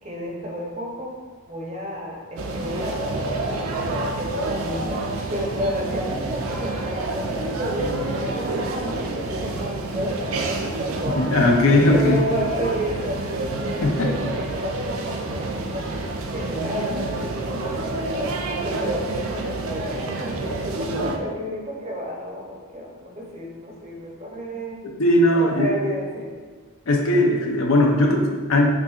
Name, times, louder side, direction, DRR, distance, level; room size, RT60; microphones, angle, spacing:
voice 1, 0.0-1.2 1.5-11.2 11.7-13.2 13.6-24.8 25.3-26.4, equal, 30° right, -2 dB, 0.6 m, -31 dB
sound 1, 2.4-21.2, right 2 dB, 70° right, 0.4 m, -28 dB
voice 2, 11.2-12.2 13.8-14.1 25.0-25.7 26.9-28.7, left 1 dB, 70° left, 0 dB, 0.6 m, -18 dB
5.3 x 2.6 x 2.4 m, 1.4 s
head